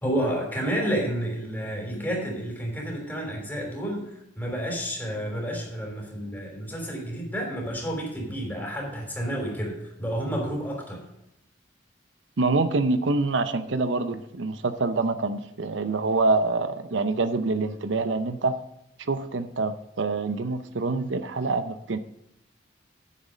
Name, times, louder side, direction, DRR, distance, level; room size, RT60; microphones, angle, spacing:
voice 1, 0.0-11.0, equal, 10° left, -1 dB, 3.3 m, -30 dB
voice 2, 12.4-18.5 19.1-22.0, right 3 dB, 80° right, 10 dB, 0.7 m, -26 dB
9.4 x 7.3 x 5.1 m, 0.83 s
head